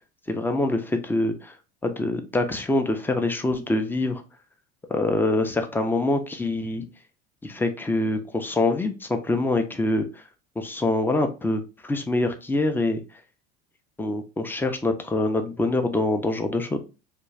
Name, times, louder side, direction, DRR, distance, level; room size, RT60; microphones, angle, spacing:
voice 1, 0.3-1.5 1.8-4.2 4.9-6.9 7.4-10.2 10.6-13.0 14.0-16.8, left 2 dB, 5° left, 6 dB, 0.4 m, -25 dB
2.5 x 2.2 x 3.1 m, 0.30 s
hypercardioid pair, 90°, 30 cm